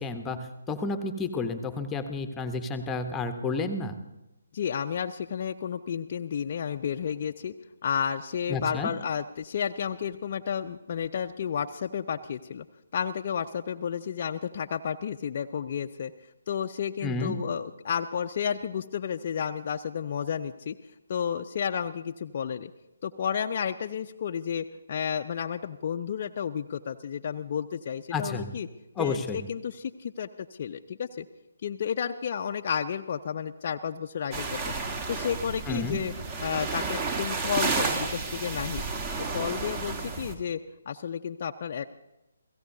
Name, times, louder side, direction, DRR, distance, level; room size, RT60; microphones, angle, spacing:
voice 1, 0.0-3.9 8.5-8.9 17.0-17.4 28.1-28.5 29.0-29.4 35.7-36.0, left 3 dB, 10° left, 8 dB, 0.9 m, -31 dB
voice 2, 4.5-7.5 7.8-12.7 12.9-16.1 16.5-20.8 21.1-22.7 23.0-28.7 29.0-31.3 31.6-34.6 35.1-36.1 36.4-38.8 39.3-41.9, left 8 dB, 40° left, 4 dB, 0.5 m, -32 dB
sound 1, 34.3-40.3, right 4 dB, 25° right, 1.4 m, -31 dB
29.0 x 16.5 x 2.7 m, 0.94 s
figure-of-eight pair, 145°, 0 cm